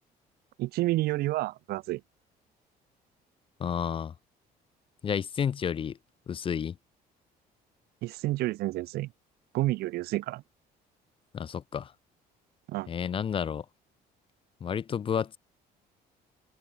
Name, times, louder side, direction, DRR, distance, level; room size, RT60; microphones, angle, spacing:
voice 1, 0.6-2.0 8.0-9.1 9.5-10.4 12.7-12.9, right 17 dB, 70° right, 0.4 m, -29 dB
voice 2, 3.6-4.1 5.0-6.0 6.3-6.8 11.3-11.9 12.9-13.7 14.6-15.3, left 7 dB, 30° left, 0.4 m, -31 dB
open air
cardioid pair, 110°, 17 cm